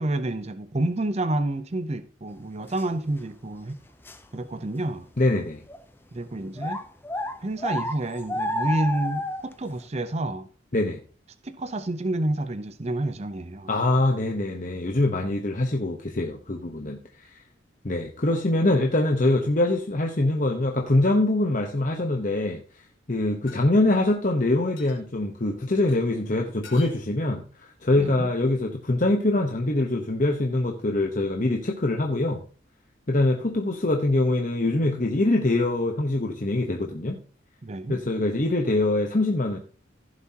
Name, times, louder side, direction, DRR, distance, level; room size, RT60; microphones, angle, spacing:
voice 1, 0.0-3.8 4.3-5.1 6.1-6.8 7.4-10.5 11.4-13.7 27.9-28.3 37.6-38.0, right 1 dB, 30° right, 0.5 m, -29 dB
sound 1, 2.8-2.9 3.4-3.5 4.0-4.2 4.9-5.0 5.7-5.8 6.6-9.5, left 1 dB, 10° left, 0.6 m, -30 dB
voice 2, 5.2-5.6 10.7-11.0 13.7-17.4 17.8-32.4 33.1-37.2 37.9-39.6, left 2 dB, 40° left, 1.0 m, -24 dB
sound 2, 23.5-23.6 24.8-25.0 25.9-26.0 26.6-27.0, left 5 dB, 80° left, 3.9 m, -46 dB
15.5 x 7.4 x 2.9 m
head